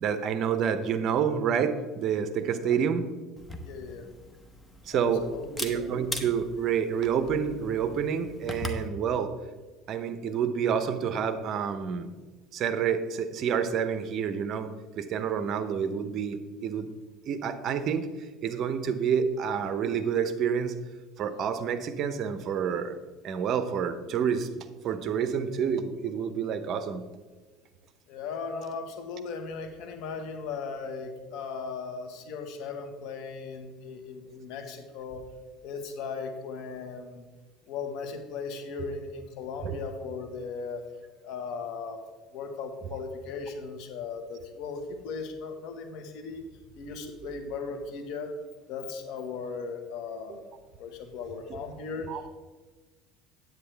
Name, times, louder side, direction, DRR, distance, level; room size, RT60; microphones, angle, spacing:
voice 1, 0.0-3.0 4.9-5.2 5.6-9.3 9.9-12.1 12.5-14.7 15.0-16.9 17.3-18.1 18.4-20.7 21.2-22.9 23.2-24.5 24.8-27.0 38.8-38.9 39.6-39.8 52.1-52.2, right 7 dB, 50° right, 10 dB, 0.7 m, -28 dB
Camera, 3.4-8.9, left 1 dB, 10° left, 1.0 m, -40 dB
voice 2, 3.6-4.1 4.9-5.7 28.1-35.2 35.6-37.2 37.7-40.8 41.2-42.0 42.3-46.5 46.7-48.3 48.7-50.4 50.8-52.3, left 5 dB, 70° left, 6 dB, 1.4 m, -37 dB
9.2 x 8.6 x 3.4 m, 1.3 s
supercardioid pair, 115°, 0 cm